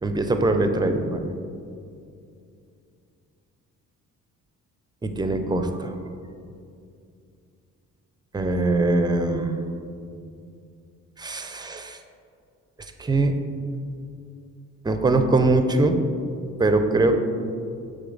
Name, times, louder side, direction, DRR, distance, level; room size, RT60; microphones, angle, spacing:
voice 1, 0.0-1.3 5.0-5.9 8.3-9.8 11.2-12.0 13.0-13.3 14.8-16.0 16.6-17.2, right 2 dB, 15° right, 7 dB, 0.4 m, -22 dB
6.8 x 3.7 x 3.8 m, 2.4 s
cardioid pair, 90°, 30 cm